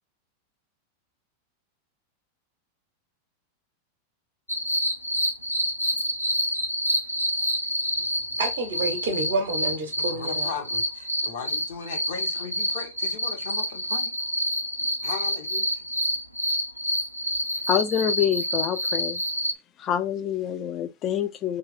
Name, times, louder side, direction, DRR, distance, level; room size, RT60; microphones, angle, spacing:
sound 1, 4.5-19.5, equal, 90° right, 0.4 m, -27 dB
voice 1, 8.4-10.5, right 2 dB, 55° right, 0.7 m, -28 dB
voice 2, 10.0-14.2 15.0-15.8, left 6 dB, 55° left, 0.8 m, -37 dB
voice 3, 17.7-19.2 19.8-21.6, left 10 dB, 30° left, 0.4 m, -26 dB
3.0 x 2.2 x 3.4 m
figure-of-eight pair, 90°, 0 cm